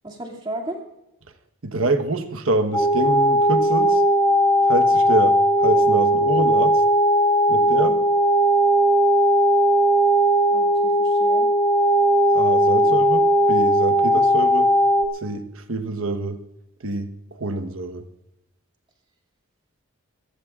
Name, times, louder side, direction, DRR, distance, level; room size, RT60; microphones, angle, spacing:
voice 1, 0.0-0.8 7.5-8.0 10.5-11.5 12.8-13.0, right 1 dB, 20° right, 1 dB, 2.4 m, -35 dB
voice 2, 1.6-4.0 4.7-6.8 7.5-7.9 12.3-14.7 15.2-16.4 16.8-17.1 17.4-18.0, right 2 dB, 75° right, 8 dB, 1.2 m, -26 dB
sound 1, 2.7-15.0, equal, 15° left, 1.6 m, -18 dB
27.0 x 15.5 x 2.5 m, 0.93 s
head